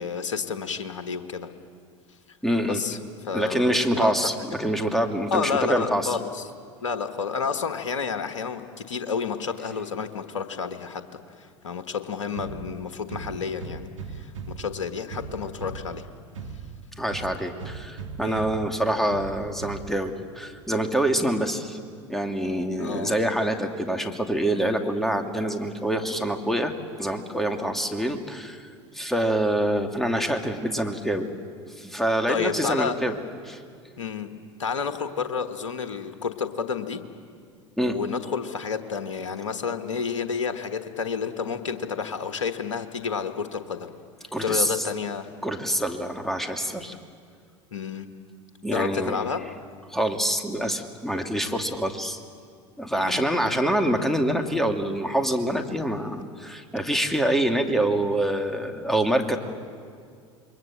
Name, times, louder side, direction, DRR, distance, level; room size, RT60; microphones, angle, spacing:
voice 1, 0.0-1.5 2.6-4.1 5.3-6.4 6.8-16.0 18.2-18.7 22.8-23.2 32.3-33.0 34.0-37.0 37.8-43.9 44.2-45.3 47.7-48.1 48.7-49.4 52.9-53.3, left 6 dB, 80° left, 8 dB, 1.4 m, -30 dB
voice 2, 2.4-2.8 3.3-6.2 17.0-21.8 22.1-26.7 27.0-28.7 28.9-31.3 31.8-33.1 33.4-33.6 37.8-38.0 44.3-44.9 45.4-47.0 48.6-49.2 49.9-52.2 52.8-59.4, right 1 dB, ahead, 4 dB, 2.4 m, -26 dB
sound 1, 12.3-20.3, right 5 dB, 80° right, 1.5 m, -39 dB
27.5 x 22.5 x 7.6 m, 2.1 s
figure-of-eight pair, 75°, 16 cm